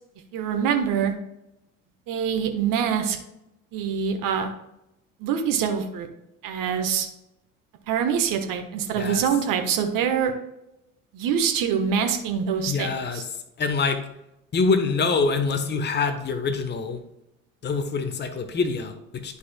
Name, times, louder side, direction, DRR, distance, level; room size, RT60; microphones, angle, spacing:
voice 1, 0.3-1.1 2.1-3.2 3.7-4.5 5.2-6.1 6.4-7.1 7.9-10.3 11.1-13.2, right 7 dB, 50° right, 5 dB, 1.3 m, -25 dB
voice 2, 12.7-13.2 13.6-14.0 14.5-17.0 17.6-19.4, left 4 dB, 25° left, 8 dB, 1.0 m, -25 dB
11.0 x 5.5 x 2.2 m, 0.87 s
hypercardioid pair, 65°, 42 cm